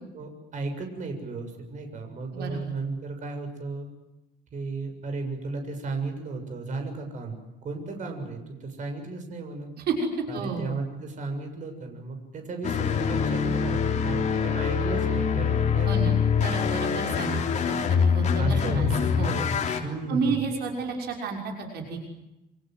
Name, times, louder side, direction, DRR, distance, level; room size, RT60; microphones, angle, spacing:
voice 1, 0.0-3.9 4.5-9.7 10.3-16.1 18.4-19.2 19.8-20.5, right 3 dB, 45° right, 5 dB, 7.0 m, -34 dB
voice 2, 2.3-2.7 9.9-10.0 10.3-10.7 15.8-17.4 17.7-19.8 20.1-22.0, right 5 dB, 65° right, 2 dB, 6.1 m, -31 dB
sound 1, 12.6-19.8, left 6 dB, 40° left, 3.8 m, -24 dB
27.5 x 26.5 x 7.9 m, 0.96 s
cardioid pair, 150°, 18 cm